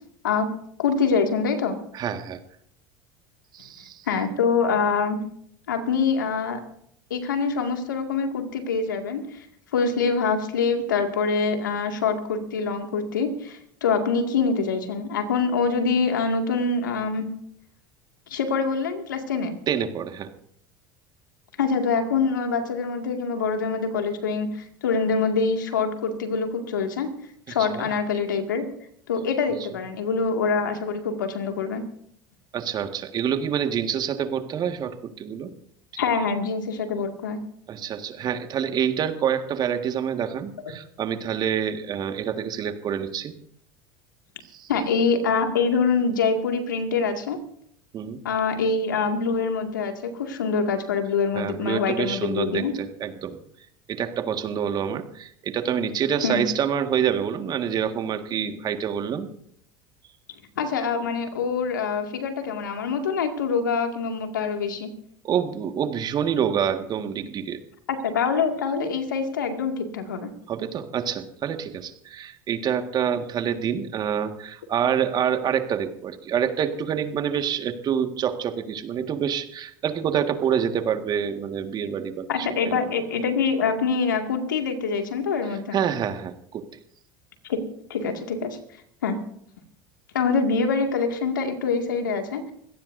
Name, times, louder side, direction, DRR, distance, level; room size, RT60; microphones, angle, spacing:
voice 1, 0.8-1.8 4.1-5.2 5.7-6.6 7.1-9.5 9.7-17.3 18.3-19.5 21.6-27.1 27.5-28.7 29.1-31.8 36.0-37.4 44.7-47.4 48.2-52.7 56.2-56.4 60.6-64.9 67.9-70.3 82.3-85.8 87.4-87.6 87.9-88.6 89.0-89.2 90.1-92.5, left 5 dB, 85° left, 5 dB, 2.2 m, -25 dB
voice 2, 1.9-2.4 3.5-4.0 19.7-20.3 27.5-27.9 32.5-35.5 35.9-36.0 37.7-43.3 44.5-44.7 47.9-48.2 51.3-53.4 53.9-59.3 65.2-67.6 70.5-82.8 85.7-86.6, right 8 dB, 45° right, 7 dB, 1.7 m, -27 dB
24.0 x 17.0 x 2.7 m, 0.66 s
hypercardioid pair, 80°, 10 cm